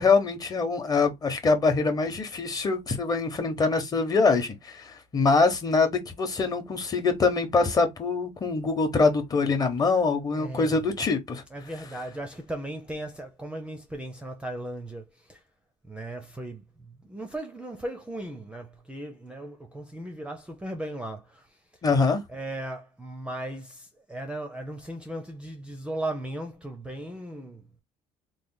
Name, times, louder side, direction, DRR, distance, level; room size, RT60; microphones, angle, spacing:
voice 1, 0.0-11.4 21.8-22.2, left 4 dB, 30° left, 0.9 m, -24 dB
voice 2, 10.3-10.8 11.5-15.4 15.8-21.5 22.3-27.6, right 1 dB, 10° right, 0.5 m, -37 dB
3.2 x 2.2 x 3.8 m
cardioid pair, 145°, 14 cm